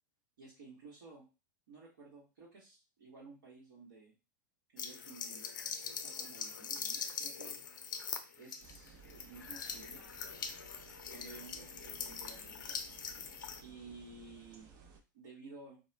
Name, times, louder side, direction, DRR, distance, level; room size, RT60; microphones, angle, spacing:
voice 1, 0.4-1.2 1.7-4.1 4.7-5.4 5.9-7.6 8.4-10.1 11.0-12.8 13.6-14.7 15.1-15.8, right 3 dB, 75° right, -5 dB, 1.0 m, -54 dB
sound 1, 4.8-13.6, left 6 dB, 80° left, 0.4 m, -42 dB
sound 2, 8.6-15.0, right 5 dB, 45° right, 0.6 m, -59 dB
2.3 x 2.1 x 3.1 m, 0.29 s
hypercardioid pair, 100°, 10 cm